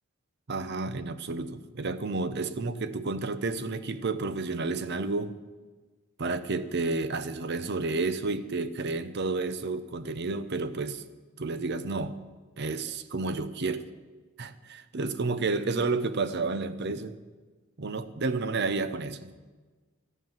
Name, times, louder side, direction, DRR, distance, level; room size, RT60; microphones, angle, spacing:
voice 1, 0.5-5.3 6.2-11.0 11.4-12.2 12.6-13.9 14.4-17.2 17.8-19.4, right 3 dB, 55° right, 13 dB, 0.7 m, -31 dB
14.0 x 8.3 x 7.3 m, 1.3 s
head